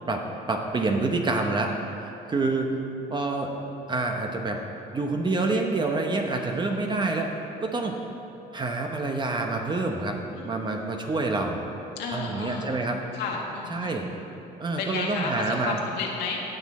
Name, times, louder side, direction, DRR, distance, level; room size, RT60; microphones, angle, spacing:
voice 1, 0.1-2.8 3.1-3.5 3.9-4.6 4.9-7.3 7.6-8.0 8.5-10.2 10.4-11.6 12.1-13.0 13.7-14.1 14.6-15.8, right 3 dB, 25° right, 2 dB, 0.8 m, -27 dB
voice 2, 10.3-11.6 12.0-12.7 13.1-14.0 14.8-16.4, left 4 dB, 85° left, -1 dB, 1.7 m, -33 dB
17.0 x 6.2 x 4.2 m, 2.9 s
cardioid pair, 110°, 17 cm